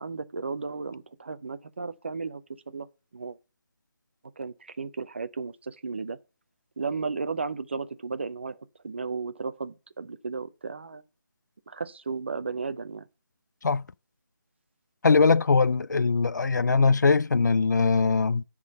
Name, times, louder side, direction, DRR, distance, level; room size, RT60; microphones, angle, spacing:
voice 1, 0.0-2.9 3.1-3.4 4.4-6.2 6.8-8.6 8.8-11.0 11.7-13.0 15.9-16.0, right 4 dB, 35° right, 0.5 m, -34 dB
voice 2, 15.0-18.4, left 4 dB, 55° left, 0.4 m, -21 dB
10.0 x 3.8 x 6.3 m
figure-of-eight pair, 170°, 11 cm